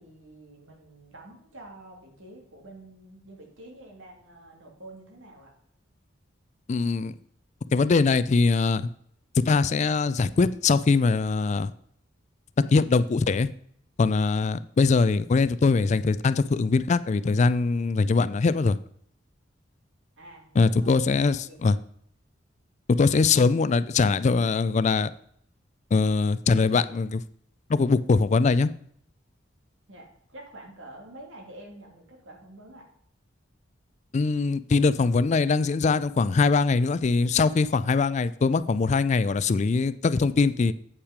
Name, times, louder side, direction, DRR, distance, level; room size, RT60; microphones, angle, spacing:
voice 1, 0.0-5.5 20.2-21.6 29.9-32.9, right 1 dB, 90° right, 0 dB, 2.4 m, -48 dB
voice 2, 6.7-7.1 7.7-8.9 9.5-11.7 12.7-13.5 14.0-18.8 20.6-21.8 23.0-25.1 25.9-27.2 27.7-28.7 34.1-40.7, left 4 dB, 35° left, 15 dB, 0.3 m, -22 dB
8.3 x 5.8 x 5.0 m, 0.67 s
head